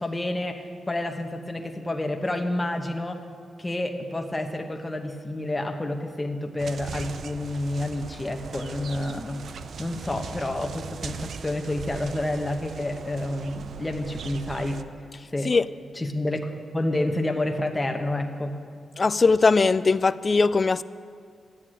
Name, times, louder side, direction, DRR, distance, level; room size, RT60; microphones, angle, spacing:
voice 1, 0.0-3.2 3.6-9.4 9.8-14.8 15.3-15.6 15.9-18.6, left 1 dB, 15° left, 1.1 m, -29 dB
sound 1, 6.6-14.8, right 6 dB, 65° right, 0.5 m, -39 dB
voice 2, 19.0-20.8, left 4 dB, 35° left, 0.3 m, -20 dB
13.0 x 8.7 x 8.9 m
cardioid pair, 110°, 0 cm